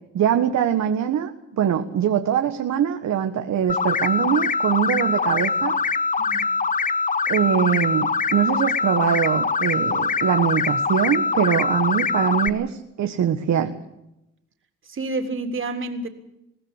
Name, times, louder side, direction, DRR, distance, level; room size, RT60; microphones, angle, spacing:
voice 1, 0.1-5.7 7.3-13.7, right 9 dB, 65° right, 6 dB, 1.6 m, -22 dB
sound 1, 3.7-12.5, left 4 dB, 25° left, 0.9 m, -23 dB
voice 2, 6.2-6.5 14.8-16.1, right 2 dB, 40° right, 5 dB, 3.5 m, -29 dB
22.0 x 16.5 x 8.2 m, 0.88 s
cardioid pair, 90°, 30 cm